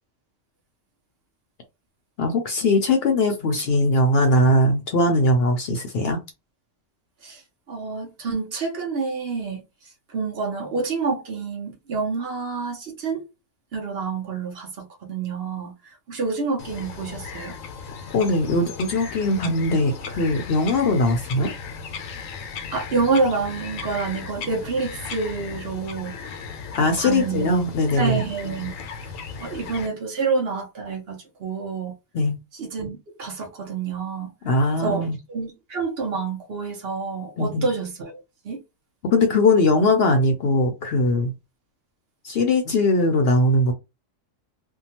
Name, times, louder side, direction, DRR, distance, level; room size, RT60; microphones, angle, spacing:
voice 1, 2.2-6.2 18.1-21.5 26.7-28.2 32.1-32.4 34.4-35.2 37.4-37.7 39.1-41.3 42.2-43.7, left 2 dB, 60° left, 0.7 m, -20 dB
voice 2, 7.7-9.6 10.1-13.3 13.7-15.7 16.1-17.5 22.7-26.1 27.0-27.6 28.0-28.7 29.4-31.9 32.6-34.3 34.8-38.6, right 4 dB, 55° right, 0.9 m, -28 dB
Bird vocalization bird call bird song, 16.6-29.9, left 6 dB, 85° left, 1.0 m, -37 dB
2.7 x 2.2 x 2.8 m
omnidirectional pair, 1.3 m